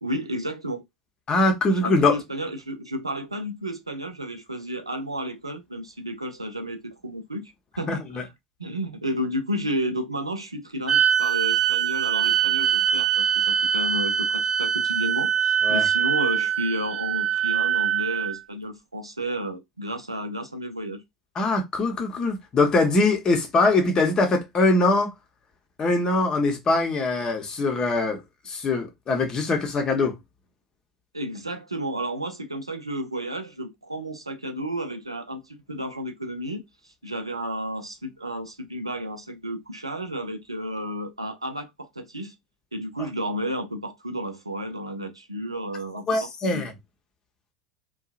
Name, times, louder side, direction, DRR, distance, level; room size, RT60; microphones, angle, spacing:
voice 1, 0.0-0.8 1.7-7.5 7.8-8.3 8.6-21.0 31.1-36.6 37.0-42.3 42.7-46.7, equal, 85° right, 0.5 m, -32 dB
voice 2, 1.3-2.2 7.9-8.0 15.6-15.9 21.4-25.1 25.8-28.2 28.5-30.1 46.1-46.7, left 2 dB, 25° left, 0.8 m, -22 dB
sound 1, 10.9-18.4, right 9 dB, 15° right, 0.7 m, -23 dB
2.7 x 2.3 x 2.4 m
figure-of-eight pair, 75°, 3 cm